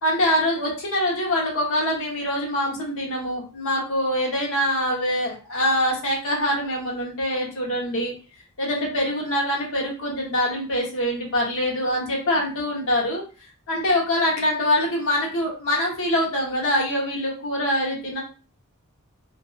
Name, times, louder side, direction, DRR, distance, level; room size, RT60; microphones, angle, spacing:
voice 1, 0.0-8.1 8.6-13.2 13.7-18.2, left 1 dB, 65° left, -1 dB, 0.9 m, -24 dB
2.5 x 2.5 x 2.3 m, 0.35 s
head